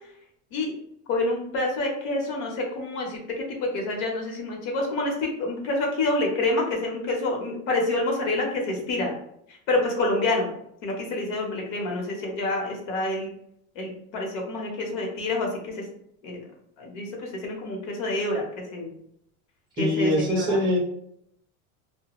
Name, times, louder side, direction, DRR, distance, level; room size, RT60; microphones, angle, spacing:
voice 1, 1.1-9.1 9.7-10.5 10.8-13.3 13.7-15.8 16.2-16.4 16.8-18.4 18.7-18.9 19.8-20.6, left 2 dB, 65° left, 0 dB, 0.9 m, -27 dB
voice 2, 19.8-20.8, left 1 dB, 15° right, -2 dB, 0.6 m, -23 dB
2.2 x 2.1 x 2.9 m, 0.73 s
cardioid pair, 160°, 37 cm